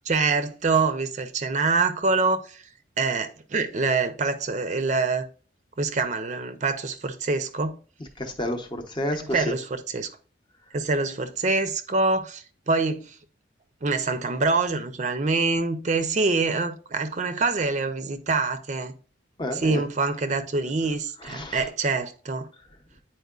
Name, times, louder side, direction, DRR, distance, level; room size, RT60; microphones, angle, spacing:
voice 1, 0.1-2.6 3.0-5.3 5.8-7.8 9.2-10.1 10.7-13.2 13.8-18.9 19.5-22.5, right 3 dB, 40° right, 0.5 m, -25 dB
voice 2, 8.2-9.4 19.4-19.8 21.2-21.6, left 1 dB, 25° left, 0.8 m, -30 dB
9.2 x 4.4 x 2.4 m
head